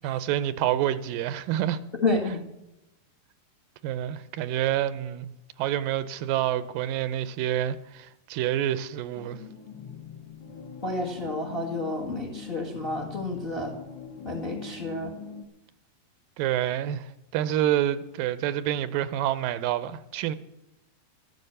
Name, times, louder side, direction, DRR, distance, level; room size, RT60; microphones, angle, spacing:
voice 1, 0.0-1.8 3.8-5.3 5.6-9.4 16.4-20.4, right 12 dB, 85° right, 2.3 m, -28 dB
voice 2, 2.0-2.4 10.8-13.7 14.2-15.1, left 2 dB, 35° left, 0.9 m, -30 dB
sound 1, 9.2-15.4, left 5 dB, 60° left, 1.6 m, -43 dB
13.0 x 12.0 x 6.7 m
omnidirectional pair, 4.0 m